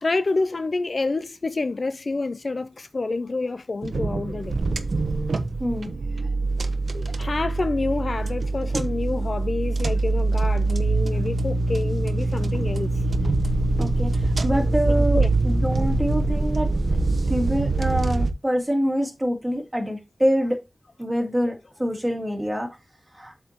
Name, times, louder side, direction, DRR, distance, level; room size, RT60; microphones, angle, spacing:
voice 1, 0.0-4.6 6.2-6.3 6.9-13.0 15.1-15.3, left 3 dB, 50° left, 0.4 m, -28 dB
sound 1, 3.8-18.3, right 2 dB, 70° right, 0.8 m, -24 dB
voice 2, 5.6-6.0 13.8-16.7 17.3-20.6 21.0-22.7 23.1-23.3, equal, 10° right, 2.5 m, -25 dB
7.8 x 6.5 x 2.9 m
wide cardioid pair, 90°, 0 cm